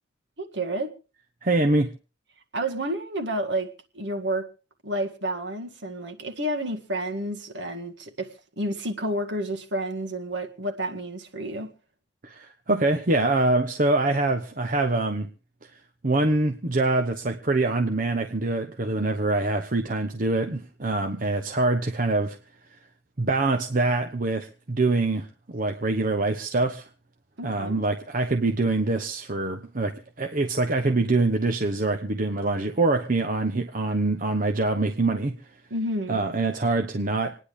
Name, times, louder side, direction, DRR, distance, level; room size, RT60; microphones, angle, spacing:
voice 1, 0.4-0.9 2.5-4.5 4.8-11.7 27.4-27.8 35.7-36.2, right 1 dB, 60° right, 1.9 m, -30 dB
voice 2, 1.4-1.9 12.2-15.3 15.6-15.7 16.0-22.4 23.2-26.9 27.4-35.3 36.1-37.4, right 2 dB, 45° right, 0.9 m, -24 dB
27.5 x 10.0 x 3.4 m
head